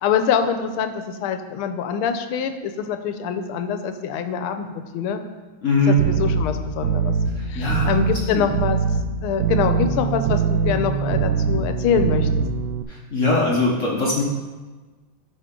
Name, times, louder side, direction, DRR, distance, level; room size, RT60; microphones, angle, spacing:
voice 1, 0.0-5.2 5.9-7.1 7.5-8.8 9.2-12.3, left 7 dB, 85° left, 8 dB, 1.5 m, -24 dB
voice 2, 5.6-6.0 7.5-7.9 8.2-8.4 12.9-14.2, left 2 dB, 45° left, -3 dB, 1.1 m, -21 dB
sound 1, 6.0-12.8, right 6 dB, 80° right, 0.9 m, -23 dB
12.0 x 5.0 x 3.7 m, 1.3 s
omnidirectional pair, 2.3 m